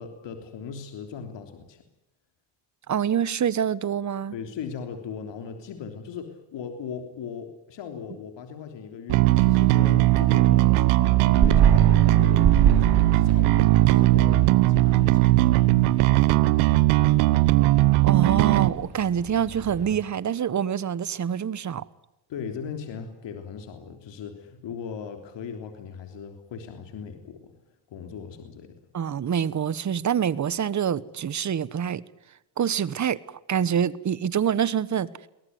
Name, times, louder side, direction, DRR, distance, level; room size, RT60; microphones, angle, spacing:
voice 1, 0.0-1.8 4.3-10.7 11.0-15.8 22.3-27.6 27.9-28.7, left 6 dB, 65° left, 3.4 m, -38 dB
voice 2, 2.9-4.3 18.0-21.9 28.9-32.0 32.6-33.2 33.5-35.1, right 8 dB, 35° right, 1.2 m, -26 dB
Bass guitar, 9.1-18.7, right 18 dB, 90° right, 1.1 m, -19 dB
sound 1, 9.2-20.0, right 7 dB, 55° right, 4.4 m, -28 dB
23.0 x 18.5 x 9.5 m
supercardioid pair, 85°, 47 cm